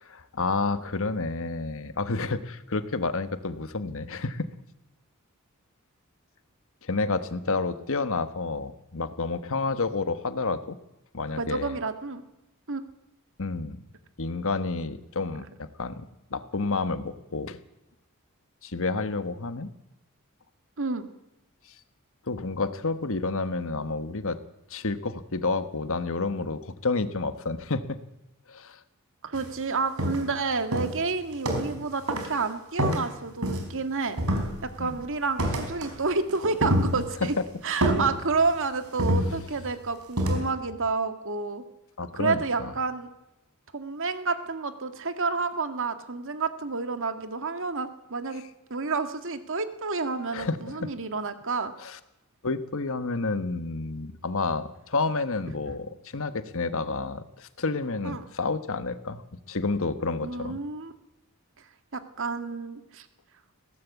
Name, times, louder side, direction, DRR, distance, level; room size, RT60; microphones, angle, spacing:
voice 1, 0.0-4.5 6.8-10.8 11.1-11.8 13.4-13.8 14.2-16.0 16.3-17.6 18.6-19.7 22.3-24.4 24.7-28.0 28.5-28.8 34.8-35.0 37.4-37.5 42.0-42.7 50.3-50.9 51.8-52.0 52.4-59.2 59.5-60.6, left 3 dB, 65° left, 11 dB, 1.4 m, -30 dB
voice 2, 11.4-12.2 12.7-12.8 20.8-21.1 29.2-34.2 34.6-37.3 37.6-41.6 42.2-43.1 43.7-48.4 48.7-51.7 58.0-58.2 60.2-60.9 61.9-63.1, right 4 dB, 60° right, 9 dB, 1.9 m, -29 dB
sound 1, 29.3-29.5 30.0-30.4 30.7-31.8 32.1-32.4 32.8-33.8 34.2-34.9 35.4-36.0 36.3-37.3 37.8-38.6 39.0-39.7 40.2-40.5, equal, 90° right, 4.7 m, -27 dB
20.5 x 17.0 x 8.3 m, 0.90 s
head